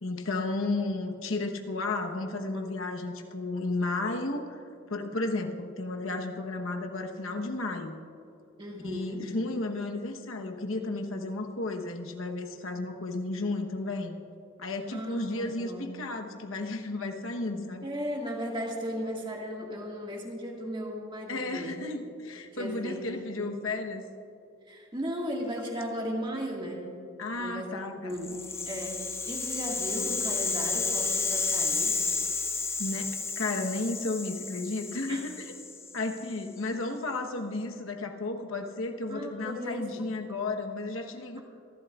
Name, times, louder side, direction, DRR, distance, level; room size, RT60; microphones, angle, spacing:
voice 1, 0.0-4.6 4.9-8.0 8.8-14.2 14.6-17.9 21.3-24.0 27.2-28.4 32.8-35.5 35.9-41.4, left 2 dB, 80° left, 3 dB, 1.0 m, -33 dB
voice 2, 8.6-9.3 14.9-16.0 17.8-21.8 22.5-23.6 24.7-26.9 27.4-28.3 28.7-32.0 35.1-35.3 39.1-40.1, equal, 25° right, -1 dB, 1.8 m, -36 dB
Rattle (instrument), 28.2-36.4, left 4 dB, 10° left, 0.5 m, -32 dB
26.0 x 12.0 x 2.4 m, 2.6 s
head